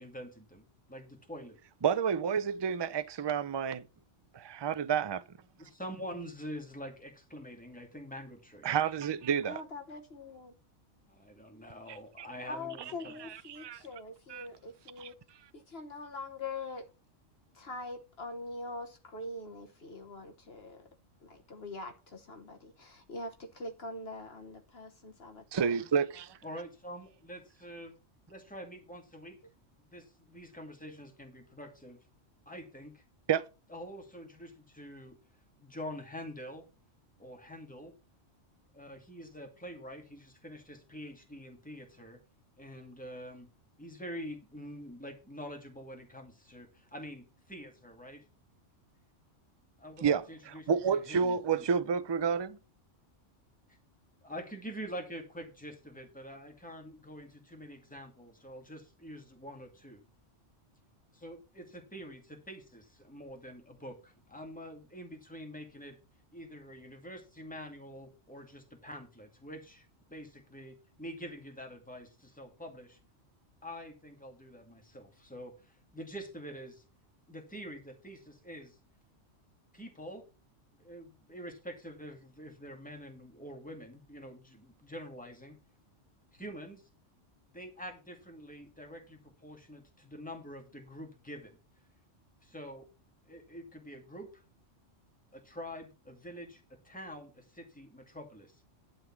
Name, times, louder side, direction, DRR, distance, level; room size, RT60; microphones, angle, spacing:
voice 1, 0.0-1.6 5.6-8.7 11.1-13.1 26.4-28.0 28.3-29.4 29.9-32.0 32.5-33.0 33.7-35.2 35.6-36.7 37.2-37.9 38.7-42.2 42.6-43.5 43.8-48.2 49.8-51.6 54.2-60.0 61.1-66.0 66.3-73.0 73.6-76.8 77.3-78.8 79.7-80.2 80.8-85.6 86.3-86.8 87.5-91.6 92.4-92.9 93.3-94.4 95.3-98.6, equal, 5° left, 2.2 m, -46 dB
voice 2, 1.8-3.8 4.3-5.2 8.6-9.6 12.2-12.3 13.5-13.8 14.3-14.5 15.0-15.1 25.5-26.4 33.3-33.4 50.0-52.6, right 7 dB, 45° right, 0.3 m, -30 dB
voice 3, 9.5-10.6 12.4-15.1 15.5-16.8 17.5-20.9 21.2-25.8, left 2 dB, 55° left, 1.4 m, -43 dB
11.5 x 4.1 x 7.2 m
omnidirectional pair, 1.3 m